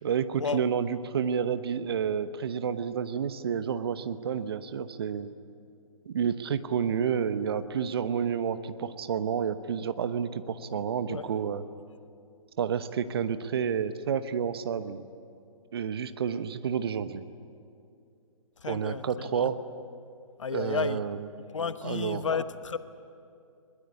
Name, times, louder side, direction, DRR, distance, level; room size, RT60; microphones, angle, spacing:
voice 1, 0.0-5.3 6.1-11.7 12.6-15.0 15.7-17.2 18.7-19.6 20.5-21.3 21.8-22.2, right 7 dB, 45° right, 12 dB, 1.0 m, -30 dB
voice 2, 18.6-19.5 20.4-21.0 21.5-22.8, left 6 dB, 60° left, 13 dB, 1.1 m, -32 dB
22.0 x 21.0 x 9.7 m, 2.5 s
figure-of-eight pair, 130°, 18 cm